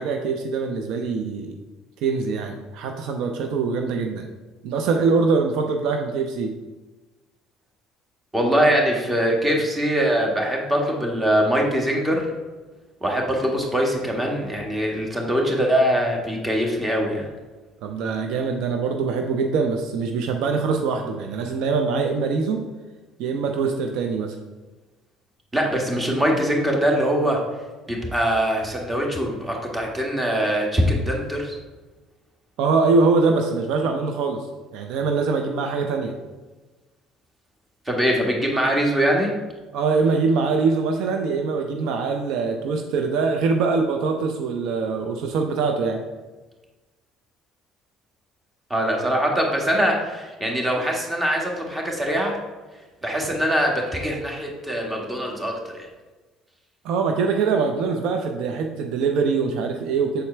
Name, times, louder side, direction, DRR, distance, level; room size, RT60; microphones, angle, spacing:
voice 1, 0.0-1.6 2.0-4.3 4.6-6.6 17.8-22.7 23.2-24.4 32.6-36.2 39.7-46.0 56.8-60.2, right 4 dB, 70° right, 4 dB, 0.5 m, -23 dB
voice 2, 8.3-12.3 13.0-17.3 25.5-27.4 27.9-31.6 37.8-39.3 48.7-52.4 53.0-55.9, equal, 15° right, 0 dB, 1.6 m, -22 dB
6.8 x 4.3 x 3.3 m, 1.2 s
hypercardioid pair, 70°, 0 cm